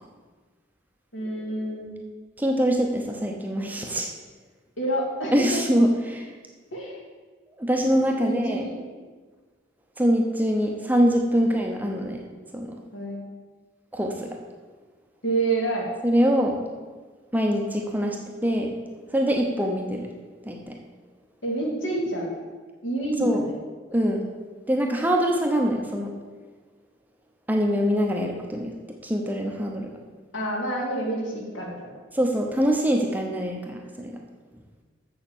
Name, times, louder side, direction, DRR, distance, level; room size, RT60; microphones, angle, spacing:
voice 1, 1.1-2.0 4.8-5.6 6.7-7.0 8.2-8.8 12.9-13.2 15.2-15.9 21.4-22.3 22.8-23.5 30.3-31.9, right 2 dB, 75° left, -1 dB, 2.3 m, -28 dB
voice 2, 2.4-4.1 5.3-6.3 7.6-8.6 10.0-12.2 12.5-12.8 13.9-14.4 16.0-16.6 17.3-18.2 18.4-18.7 19.1-20.1 20.4-20.8 23.2-23.4 23.9-24.3 24.7-26.1 27.5-28.7 29.0-29.9 32.1-34.2, equal, 10° right, 1 dB, 0.8 m, -24 dB
7.2 x 6.9 x 7.2 m, 1.4 s
head